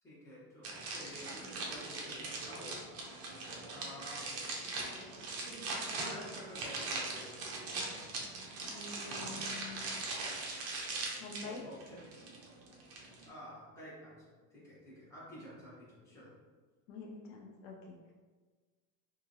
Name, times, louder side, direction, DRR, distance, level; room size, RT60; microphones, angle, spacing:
voice 1, 0.0-2.8 3.7-4.3 5.9-7.4 11.4-12.0 13.2-16.3, equal, 5° left, -10 dB, 1.1 m, -51 dB
sound 1, 0.6-13.3, right 3 dB, 35° right, 0.6 m, -41 dB
voice 2, 8.6-9.9 11.2-11.6 16.9-18.1, left 4 dB, 65° left, -1 dB, 0.6 m, -47 dB
2.8 x 2.5 x 2.6 m, 1.4 s
cardioid pair, 145°, 42 cm